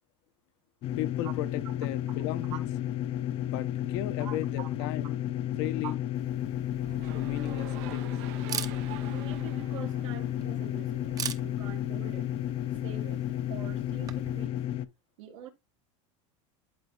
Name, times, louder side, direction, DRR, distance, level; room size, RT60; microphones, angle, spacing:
sound 1, 0.8-14.9, left 12 dB, 35° left, 0.5 m, -32 dB
voice 1, 1.0-2.6 3.4-6.0 7.1-8.1 10.5-10.6, left 13 dB, 65° left, 0.8 m, -36 dB
voice 2, 4.2-4.7 5.8-5.9 9.1-12.3 12.8-13.2 13.5-14.6 15.2-15.5, right 10 dB, 85° right, 1.8 m, -44 dB
Camera, 6.1-14.5, right 7 dB, 20° right, 0.7 m, -43 dB
sound 2, 6.8-11.0, right 16 dB, 65° right, 0.6 m, -46 dB
12.0 x 4.1 x 2.3 m
supercardioid pair, 135°, 16 cm